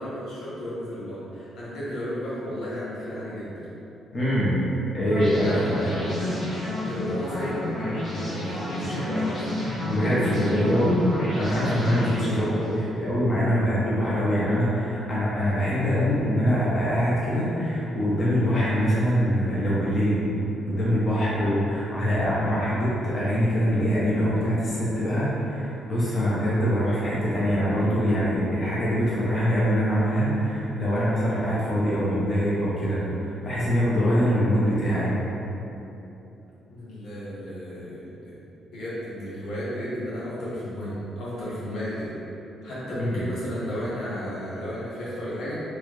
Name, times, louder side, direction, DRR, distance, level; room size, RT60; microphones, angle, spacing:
voice 1, 0.0-3.7 5.3-6.6 6.8-9.4 10.0-10.7 12.3-13.1 15.7-16.0 36.7-38.4 38.7-42.1 42.6-45.5, equal, 75° left, -9 dB, 1.0 m, -34 dB
voice 2, 4.1-4.6 4.9-5.9 9.9-11.0 11.4-12.5 13.0-20.3 20.7-35.1 43.0-43.2, equal, 35° left, -8 dB, 0.8 m, -24 dB
sound 1, 5.1-12.8, left 1 dB, 50° left, 1.4 m, -30 dB
3.1 x 2.3 x 3.1 m, 2.9 s
cardioid pair, 90°, 0 cm